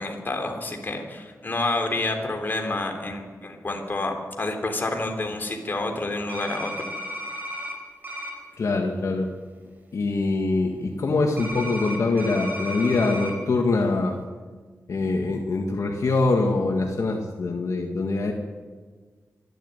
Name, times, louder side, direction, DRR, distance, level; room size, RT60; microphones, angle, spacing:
voice 1, 0.0-6.9, left 2 dB, 35° left, 3 dB, 3.5 m, -29 dB
sound 1, 6.3-7.7 8.0-8.3 11.4-13.3, equal, 30° right, 4.7 m, -34 dB
voice 2, 8.6-9.3 9.9-14.1 14.9-18.3, left 3 dB, 60° left, 2 dB, 1.8 m, -24 dB
25.0 x 12.0 x 9.3 m, 1.5 s
wide cardioid pair, 140°, 6 cm